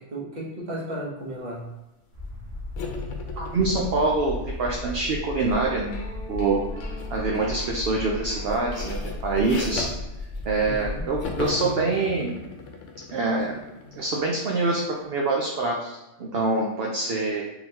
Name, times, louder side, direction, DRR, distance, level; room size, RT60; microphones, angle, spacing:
voice 1, 0.0-1.7 10.6-11.0, right 1 dB, 40° right, -5 dB, 1.1 m, -34 dB
sound 1, 2.1-11.5, left 2 dB, 90° right, 1.4 m, -35 dB
sound 2, 2.8-6.1 7.0-7.3 7.6-10.9 11.2-14.7, left 4 dB, 90° left, 1.0 m, -38 dB
voice 2, 3.4-6.6 7.1-9.9 10.4-12.3 13.1-13.6 13.9-17.4, right 3 dB, 60° right, -1 dB, 0.8 m, -25 dB
sound 3, 5.5-9.6, equal, 60° left, 1.0 m, -44 dB
3.9 x 3.8 x 2.8 m, 1.0 s
omnidirectional pair, 1.2 m